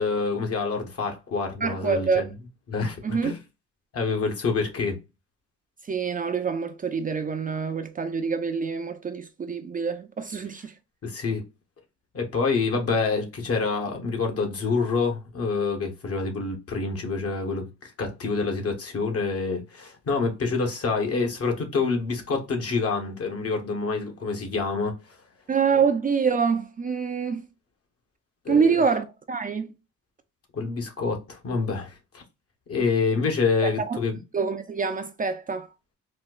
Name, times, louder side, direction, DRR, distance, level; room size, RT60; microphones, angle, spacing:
voice 1, 0.0-2.3 2.7-3.4 3.9-5.0 11.0-11.4 12.1-25.0 28.4-28.6 30.5-32.2 32.7-34.2, left 4 dB, 50° left, 1.1 m, -27 dB
voice 2, 1.6-2.3 3.0-3.3 5.8-10.7 25.5-27.5 28.5-29.7 33.6-34.0 34.3-35.7, right 5 dB, 30° right, 0.4 m, -26 dB
4.2 x 2.2 x 2.3 m
cardioid pair, 90°, 30 cm